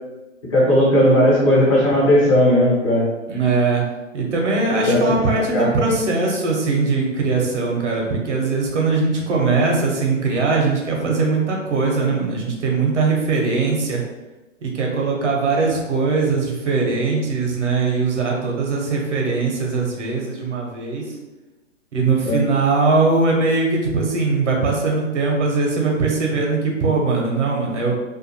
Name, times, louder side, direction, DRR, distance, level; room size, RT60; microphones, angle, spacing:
voice 1, 0.5-3.1 4.8-5.0 5.5-5.7 22.2-22.4, equal, 25° left, -6 dB, 0.6 m, -16 dB
voice 2, 3.3-3.8 4.1-14.0 14.6-21.0 21.9-27.9, right 3 dB, 60° right, -1 dB, 0.9 m, -20 dB
2.5 x 2.3 x 2.7 m, 1.1 s
hypercardioid pair, 140°, 39 cm